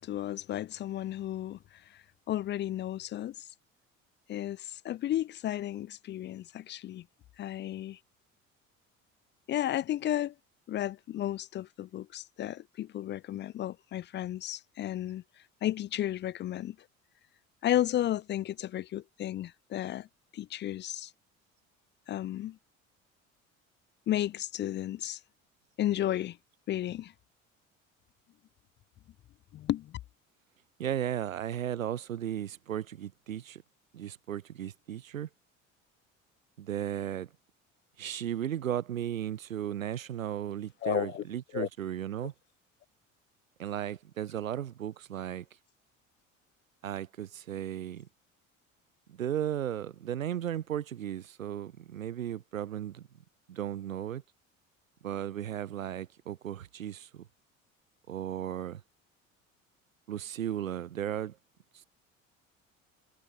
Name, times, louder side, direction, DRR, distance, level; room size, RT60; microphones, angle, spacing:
voice 1, 0.0-1.6 2.3-3.3 4.3-7.0 7.4-8.0 9.5-10.3 10.7-15.2 15.6-16.8 17.6-20.1 20.3-21.1 22.1-22.6 24.1-25.2 25.8-26.4 26.7-27.1 29.5-30.0 40.8-41.2 41.5-41.7, left 12 dB, 30° left, 0.5 m, -33 dB
voice 2, 30.8-33.6 33.9-35.3 36.6-37.3 38.0-42.3 43.6-45.5 46.8-48.1 49.1-53.1 53.5-54.2 55.0-57.3 58.1-58.8 60.1-61.4, right 10 dB, 85° right, 0.5 m, -35 dB
figure-of-eight pair, 60°, 39 cm